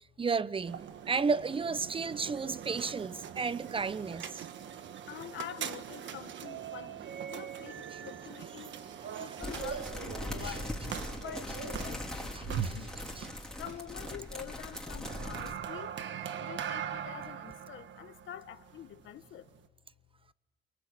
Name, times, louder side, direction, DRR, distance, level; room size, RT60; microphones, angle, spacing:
voice 1, 0.2-4.4 9.1-9.2 13.2-13.3, right 4 dB, 25° right, 0.9 m, -32 dB
sound 1, 0.6-19.7, right 9 dB, 70° right, 1.4 m, -41 dB
voice 2, 1.9-2.7 3.2-3.7 4.3-4.6 5.0-8.7 9.2-10.7 11.1-13.0 13.6-16.0 16.4-19.5, left 11 dB, 75° left, 1.8 m, -47 dB
sound 2, 9.4-15.5, left 1 dB, 5° left, 5.0 m, -40 dB
28.5 x 23.0 x 8.7 m
cardioid pair, 90°, 20 cm